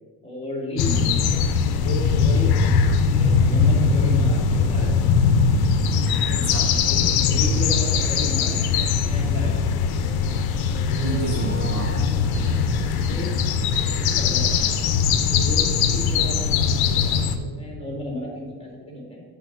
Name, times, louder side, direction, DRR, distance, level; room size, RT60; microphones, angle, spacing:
voice 1, 0.2-2.8 3.1-5.1 6.2-6.4 6.8-9.8 10.9-11.3 12.9-13.3 13.7-14.8 15.2-19.2, equal, 15° left, -1 dB, 1.8 m, -34 dB
sound 1, 0.8-17.4, left 5 dB, 65° left, 0.7 m, -21 dB
voice 2, 6.3-6.7 11.0-12.6, right 3 dB, 45° right, 1 dB, 0.9 m, -31 dB
sound 2, 11.2-14.0, right 2 dB, 20° right, 0.6 m, -35 dB
8.0 x 3.7 x 5.8 m, 1.5 s
cardioid pair, 145°, 39 cm